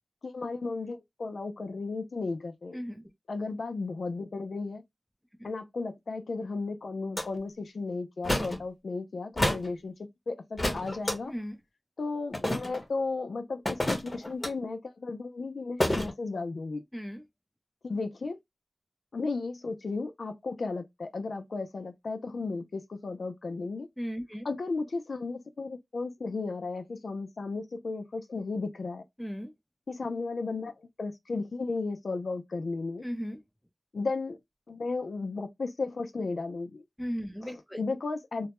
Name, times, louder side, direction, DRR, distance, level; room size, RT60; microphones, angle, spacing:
voice 1, 0.2-2.8 3.3-4.8 5.4-9.9 10.3-11.3 12.0-16.8 17.8-18.4 19.1-23.9 24.4-29.0 29.9-33.0 33.9-34.4 34.7-36.8 37.4-38.5, left 3 dB, 90° left, 0.4 m, -34 dB
voice 2, 2.7-3.0 5.4-5.5 11.3-11.6 16.9-17.2 24.0-24.5 29.2-29.5 33.0-33.4 37.0-37.9, equal, 5° left, 0.6 m, -36 dB
sound 1, 7.2-7.3 8.2-8.6 9.4-9.7 10.6-11.2 12.3-12.8 13.7-14.5 15.8-16.1, left 1 dB, 40° left, 0.9 m, -29 dB
2.2 x 2.0 x 2.9 m
cardioid pair, 45°, 0 cm